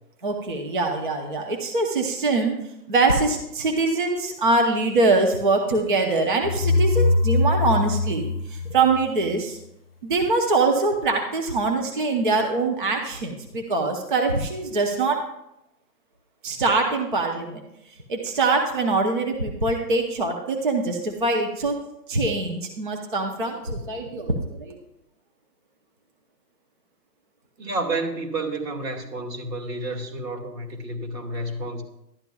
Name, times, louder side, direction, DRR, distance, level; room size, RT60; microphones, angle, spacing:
voice 1, 0.2-2.6 2.9-9.6 10.0-15.2 16.4-17.6 18.1-21.8 22.1-24.8, right 3 dB, 30° right, 3 dB, 0.6 m, -23 dB
sound 1, 6.4-9.3, left 2 dB, 40° left, 0.5 m, -22 dB
voice 2, 27.6-31.8, right 2 dB, 80° right, 0 dB, 2.2 m, -30 dB
12.0 x 10.0 x 2.3 m, 0.83 s
hypercardioid pair, 165°, 50 cm